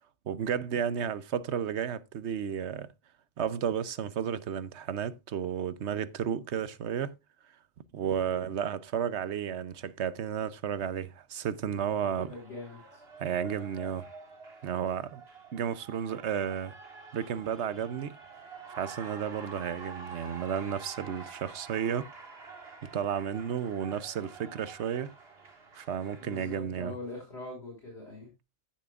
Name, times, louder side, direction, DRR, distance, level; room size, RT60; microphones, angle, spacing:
voice 1, 0.3-2.9 3.4-7.1 7.9-12.3 13.2-14.0 14.6-15.2 15.5-16.7 17.1-18.2 18.7-22.1 22.9-25.1 25.7-26.9, right 8 dB, 80° right, 1.1 m, -32 dB
voice 2, 8.2-8.5 11.8-13.0 26.2-28.3, left 2 dB, 70° left, 5.1 m, -43 dB
Cheering, 11.4-26.6, right 4 dB, 65° right, 2.2 m, -48 dB
15.0 x 7.2 x 2.4 m
omnidirectional pair, 1.1 m